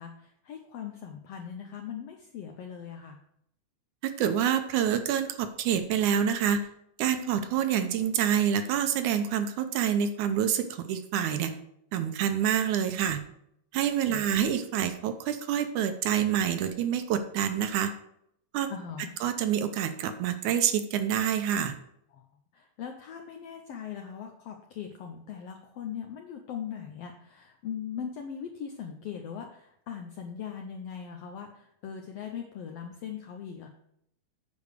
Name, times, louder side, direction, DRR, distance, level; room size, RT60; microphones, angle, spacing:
voice 1, 0.0-3.2 14.1-14.4 18.7-19.1 22.1-22.2 22.5-33.7, left 8 dB, 85° left, 4 dB, 1.3 m, -40 dB
voice 2, 4.0-6.7 7.0-11.5 11.9-13.2 13.7-17.9 18.5-18.7 19.2-21.7, right 9 dB, 75° right, 9 dB, 2.1 m, -27 dB
8.6 x 5.1 x 6.5 m, 0.74 s
omnidirectional pair, 3.8 m